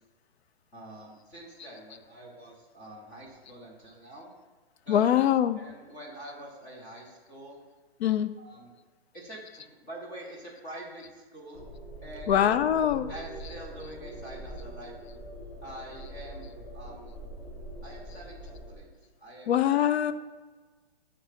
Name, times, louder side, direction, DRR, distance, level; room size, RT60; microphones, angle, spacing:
voice 1, 0.7-4.3 4.8-5.0 5.6-7.6 8.4-8.7 9.1-11.7 12.0-12.3 13.1-14.9 15.6-16.5 16.7-17.1 17.8-18.9 19.2-19.8, right 1 dB, 10° left, -4 dB, 0.5 m, -45 dB
voice 2, 4.9-5.6 8.0-8.4 12.3-13.1 19.5-20.1, left 10 dB, 80° left, 12 dB, 0.5 m, -23 dB
sound 1, 11.5-18.8, equal, 45° left, 1.4 m, -43 dB
6.2 x 3.3 x 4.9 m, 1.3 s
hypercardioid pair, 155°, 31 cm